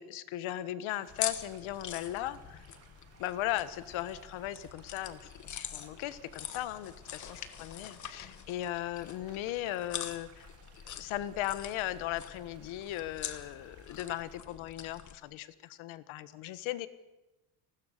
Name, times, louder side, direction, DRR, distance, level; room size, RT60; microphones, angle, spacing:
voice 1, 0.0-2.6 3.2-10.5 10.8-16.9, left 14 dB, 70° left, 14 dB, 1.5 m, -37 dB
sound 1, 0.9-14.4, right 6 dB, 30° right, 2.9 m, -61 dB
sound 2, 1.1-15.2, left 9 dB, 35° left, 1.5 m, -44 dB
29.5 x 20.0 x 6.7 m, 1.0 s
cardioid pair, 180°, 49 cm